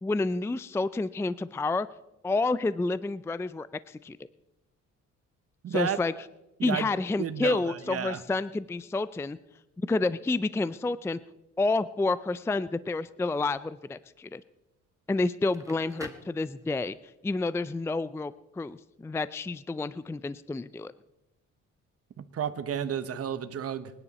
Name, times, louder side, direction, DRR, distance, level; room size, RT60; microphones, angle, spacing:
voice 1, 0.0-1.9 2.2-4.2 5.7-6.1 6.6-9.4 9.8-11.2 11.6-14.4 15.1-17.0 17.2-20.9, left 3 dB, 10° left, 16 dB, 0.4 m, -29 dB
voice 2, 5.6-6.0 6.6-6.9 7.2-8.2 22.2-23.9, right 8 dB, 50° right, 10 dB, 1.1 m, -32 dB
Crackle, 15.3-17.1, right 2 dB, 10° right, 1.7 m, -47 dB
24.5 x 10.0 x 4.2 m, 0.96 s
cardioid pair, 90°, 30 cm